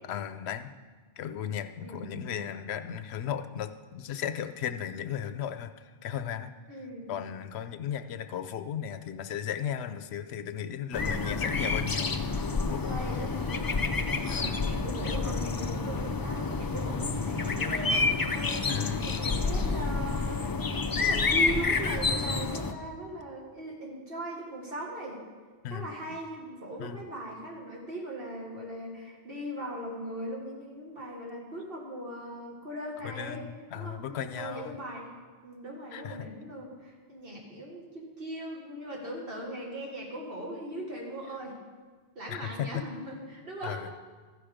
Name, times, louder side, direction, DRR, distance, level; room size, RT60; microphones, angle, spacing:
voice 1, 0.1-0.7 1.2-6.5 7.1-13.2 14.3-14.6 18.7-19.0 25.6-25.9 26.8-27.0 33.0-34.8 35.9-36.2 42.3-42.8 43.6-43.9, left 9 dB, 80° left, 11 dB, 0.8 m, -36 dB
voice 2, 1.8-2.3 6.7-7.1 10.9-11.3 12.5-13.7 14.4-20.6 21.0-25.2 25.7-33.5 33.8-35.1 35.4-41.6 42.2-43.9, right 1 dB, 60° right, -2 dB, 1.8 m, -39 dB
sound 1, 10.9-22.7, left 4 dB, 35° left, 0.3 m, -29 dB
14.5 x 6.0 x 5.0 m, 1.5 s
omnidirectional pair, 1.1 m